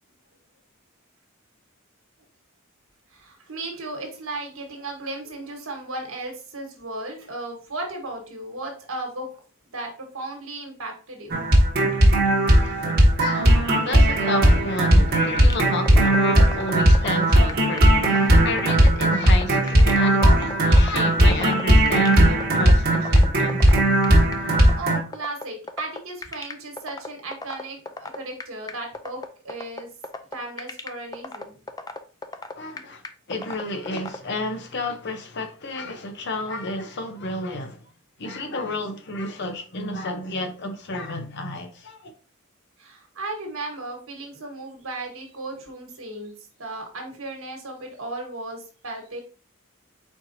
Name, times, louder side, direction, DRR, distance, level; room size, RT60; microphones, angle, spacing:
voice 1, 3.1-9.3 9.7-11.4 24.4-29.9 30.3-31.6 42.8-46.3 46.6-49.2, right 2 dB, 70° right, 1.4 m, -35 dB
sound 1, 11.3-25.0, right 1 dB, 45° right, 1.1 m, -17 dB
voice 2, 12.6-24.0 32.6-33.0 33.3-37.8 38.2-42.1, left 2 dB, 50° left, 0.8 m, -31 dB
sound 2, 15.5-34.2, left 3 dB, 20° left, 0.3 m, -34 dB
4.5 x 4.2 x 2.7 m
head